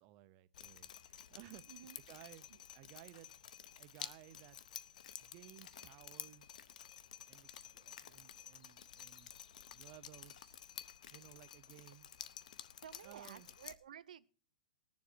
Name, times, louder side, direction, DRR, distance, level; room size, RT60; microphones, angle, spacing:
voice 1, 0.0-2.5 2.7-3.3 3.7-4.8 5.2-6.7 7.3-10.6 11.1-12.1 13.0-13.5, right 15 dB, 30° right, 0.5 m, -58 dB
Drip, 0.5-13.7, left 9 dB, 70° left, 0.7 m, -52 dB
voice 2, 1.7-2.0 2.5-2.6 12.8-14.3, right 9 dB, 85° right, 0.6 m, -53 dB
19.5 x 7.3 x 4.4 m
hypercardioid pair, 160°, 4 cm